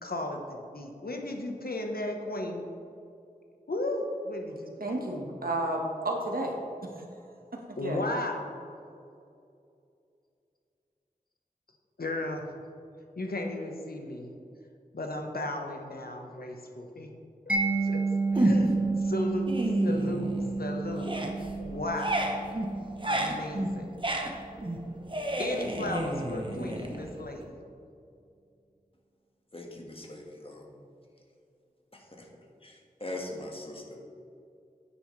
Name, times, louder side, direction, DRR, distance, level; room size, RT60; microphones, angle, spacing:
voice 1, 0.0-2.6 3.7-5.0 7.8-8.5 12.0-12.5 13.2-14.3 14.9-17.1 17.5-17.6 17.8-18.0 18.3-20.3 20.6-21.1 21.6-22.3 23.0-24.0 25.4-27.6, left 2 dB, 85° left, 2 dB, 1.1 m, -35 dB
voice 2, 4.5-6.5 6.9-7.0 7.5-8.0, right 1 dB, 80° right, 0 dB, 1.4 m, -32 dB
Mallet percussion, 17.5-24.3, right 3 dB, 10° right, 1.5 m, -31 dB
sound 1, 18.4-18.9 19.3-20.7 20.9-27.5, right 1 dB, 35° right, 1.0 m, -31 dB
voice 3, 29.5-30.8 31.9-32.3 32.6-34.0, left 1 dB, 40° left, 0 dB, 1.6 m, -41 dB
9.5 x 9.5 x 3.3 m, 2.5 s
wide cardioid pair, 55°, 15 cm